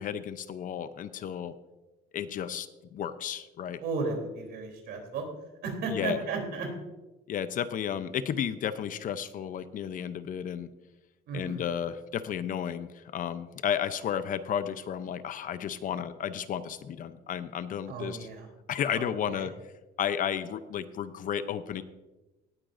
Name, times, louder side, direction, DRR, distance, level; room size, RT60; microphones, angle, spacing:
voice 1, 0.0-1.5 2.1-3.8 5.9-6.2 7.3-10.7 11.3-18.3 18.7-19.5 20.0-21.8, left 9 dB, 55° left, 13 dB, 0.6 m, -33 dB
voice 2, 3.8-5.2 5.6-6.7 11.3-11.7 17.9-18.5 18.9-19.5, right 4 dB, 75° right, 2 dB, 3.3 m, -34 dB
17.5 x 9.0 x 2.6 m, 1.1 s
cardioid pair, 110°, 17 cm